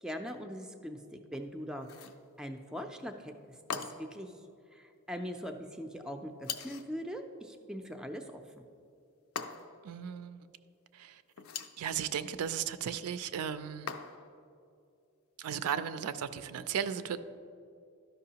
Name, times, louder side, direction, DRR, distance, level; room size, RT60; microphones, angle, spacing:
voice 1, 0.0-1.9 2.4-3.3 3.7-4.3 4.7-8.7, equal, 5° right, 0.3 m, -41 dB
sound 1, 1.8-2.2 3.7-4.2 6.4-6.9 9.4-9.9 11.3-11.8 13.9-14.4, left 6 dB, 65° left, 0.4 m, -41 dB
voice 2, 9.8-10.5 10.9-11.2 11.8-13.9 15.4-17.2, right 8 dB, 80° right, 0.4 m, -35 dB
12.5 x 5.4 x 2.8 m
head